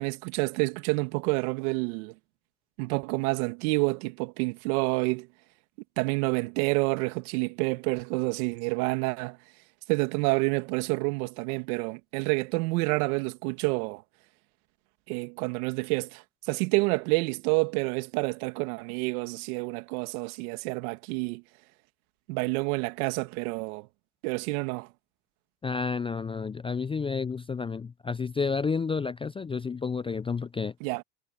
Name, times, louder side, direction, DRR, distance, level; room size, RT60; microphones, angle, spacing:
voice 1, 0.0-2.1 2.8-5.3 6.0-9.4 9.9-14.0 15.1-16.2 16.5-21.4 22.3-23.9 24.2-24.9 30.8-31.0, right 26 dB, 75° right, 2.4 m, -28 dB
voice 2, 25.6-30.7, left 5 dB, 15° left, 0.4 m, -30 dB
hypercardioid pair, 85°, 44 cm